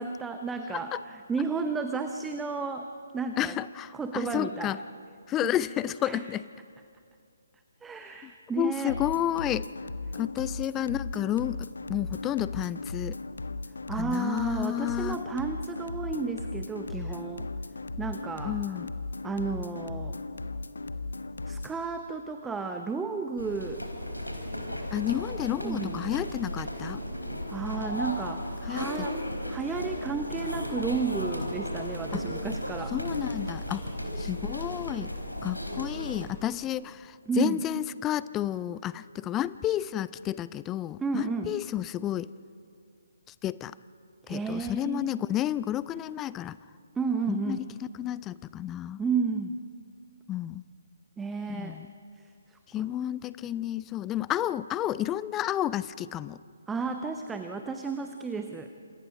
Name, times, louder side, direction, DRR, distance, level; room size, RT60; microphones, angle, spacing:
voice 1, 0.0-3.6 3.9-4.8 5.4-5.5 6.0-6.2 7.8-9.0 13.9-17.5 18.0-18.6 19.2-20.2 21.5-23.8 25.6-26.0 27.5-29.2 29.5-32.9 37.3-37.6 41.0-41.5 44.2-45.0 46.9-47.7 49.0-49.6 51.2-51.8 52.2-52.9 56.7-58.7, right 5 dB, 5° right, 6 dB, 0.9 m, -32 dB
voice 2, 3.4-4.8 5.3-6.4 8.2-8.3 8.6-9.7 10.1-13.2 13.9-15.2 18.4-18.9 24.9-27.0 28.6-29.1 32.1-32.2 32.9-33.9 34.2-35.1 35.4-42.3 43.3-43.7 44.3-46.6 47.3-47.6 48.0-49.0 50.3-50.6 51.5-51.9 52.7-56.4, left 12 dB, 15° left, 18 dB, 0.5 m, -31 dB
sound 1, 8.9-21.8, left 3 dB, 65° left, 1.1 m, -37 dB
sound 2, 23.4-36.3, equal, 85° left, 4.3 m, -35 dB
27.5 x 27.5 x 5.2 m, 2.3 s
figure-of-eight pair, 140°, 0 cm